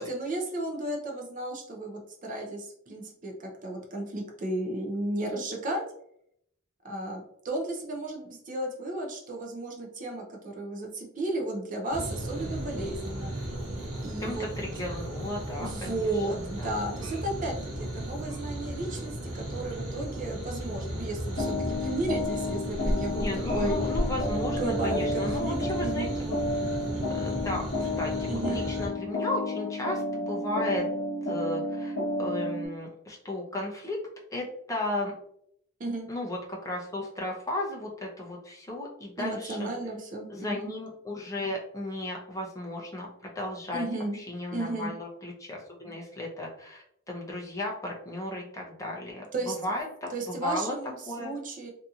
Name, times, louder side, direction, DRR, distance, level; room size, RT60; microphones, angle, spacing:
voice 1, 0.0-5.8 6.8-13.3 14.0-14.5 15.5-23.8 24.4-26.1 28.3-28.6 35.8-36.1 39.2-40.7 43.7-44.2 44.5-44.9 49.3-49.6 50.1-51.7, right 2 dB, 35° right, 1 dB, 0.5 m, -34 dB
sound 1, 11.9-28.9, right 1 dB, 85° right, 0.8 m, -35 dB
voice 2, 14.2-16.7 23.1-26.3 27.1-30.9 31.2-34.0 34.3-35.1 36.1-39.7 40.3-43.1 43.3-43.8 44.1-50.7 51.1-51.3, left 1 dB, 15° left, -2 dB, 0.5 m, -35 dB
sound 2, 21.4-32.7, left 2 dB, 55° left, 0.8 m, -31 dB
2.7 x 2.6 x 2.3 m, 0.72 s
head